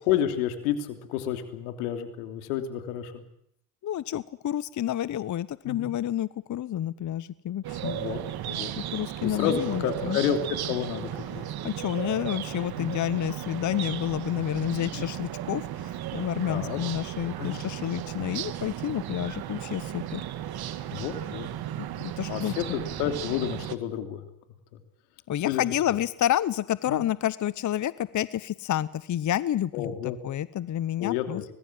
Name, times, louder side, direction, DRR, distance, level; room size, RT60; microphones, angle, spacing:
voice 1, 0.0-3.2 5.6-5.9 7.8-8.2 8.5-8.7 9.2-11.4 12.8-12.9 14.9-15.1 16.5-16.8 17.4-17.6 20.9-21.5 22.3-24.2 25.4-25.6 26.9-27.0 29.7-30.2 31.0-31.4, left 10 dB, 85° left, 7 dB, 3.2 m, -30 dB
voice 2, 3.8-7.9 8.8-10.2 11.6-20.2 21.8-22.5 25.3-31.4, left 11 dB, 40° left, 18 dB, 0.9 m, -29 dB
sound 1, 7.6-23.8, right 12 dB, 55° right, 1.9 m, -35 dB
25.0 x 20.0 x 7.6 m, 0.70 s
supercardioid pair, 70°, 43 cm